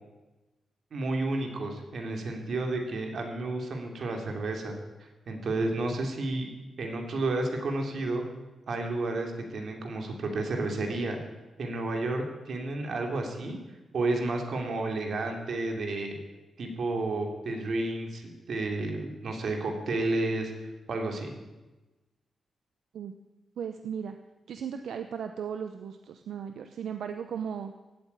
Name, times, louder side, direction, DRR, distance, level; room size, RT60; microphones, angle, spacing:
voice 1, 0.9-6.5 6.8-8.2 8.7-11.2 11.6-13.6 13.9-16.2 16.6-21.3, right 2 dB, 60° right, 3 dB, 3.1 m, -31 dB
voice 2, 23.6-24.2 24.5-27.7, right 7 dB, 80° right, 7 dB, 0.8 m, -36 dB
15.5 x 8.8 x 9.8 m, 1.1 s
wide cardioid pair, 140°, 0 cm